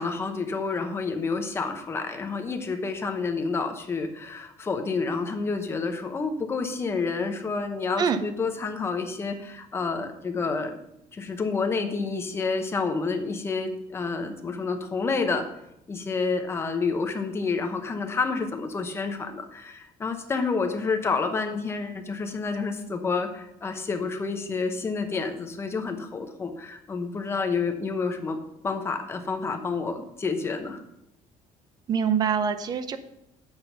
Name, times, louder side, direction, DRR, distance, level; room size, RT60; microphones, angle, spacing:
voice 1, 0.0-10.8 11.1-15.5 15.9-28.4 28.6-30.8, left 4 dB, 20° left, 6 dB, 0.8 m, -29 dB
voice 2, 31.9-33.0, right 7 dB, 30° right, 11 dB, 0.6 m, -24 dB
7.9 x 5.9 x 5.6 m, 0.83 s
cardioid pair, 175°, 13 cm